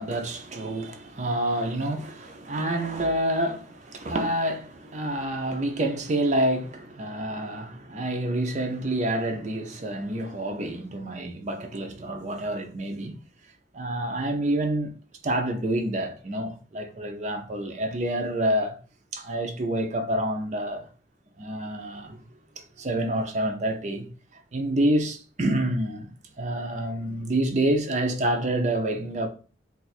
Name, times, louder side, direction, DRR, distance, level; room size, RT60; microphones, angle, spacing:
voice 1, 0.0-13.2 13.7-14.9 15.2-18.8 19.1-20.9 21.4-22.2 22.6-24.1 24.5-26.1 26.4-29.3, right 1 dB, 40° right, 0.5 m, -28 dB
2.4 x 2.4 x 4.1 m
head